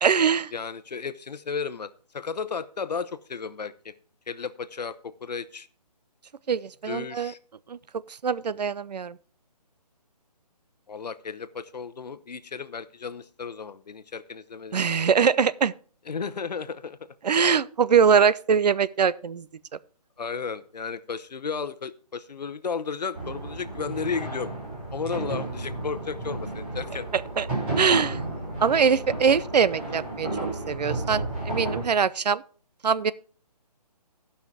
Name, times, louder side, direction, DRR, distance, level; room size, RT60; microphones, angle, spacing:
voice 1, 0.0-0.5 6.5-7.3 7.7-7.8 8.2-9.2 14.7-15.7 17.2-19.5 27.1-27.5 27.8-28.2 28.6-32.4 32.8-33.1, right 6 dB, 80° right, 0.6 m, -22 dB
voice 2, 0.5-3.9 4.3-5.7 6.9-7.4 10.9-15.1 16.1-17.0 20.2-24.5 24.9-27.1, left 5 dB, 85° left, 0.8 m, -34 dB
sound 1, 23.1-31.8, right 2 dB, 15° right, 2.0 m, -32 dB
13.5 x 5.7 x 4.7 m
hypercardioid pair, 180°, 21 cm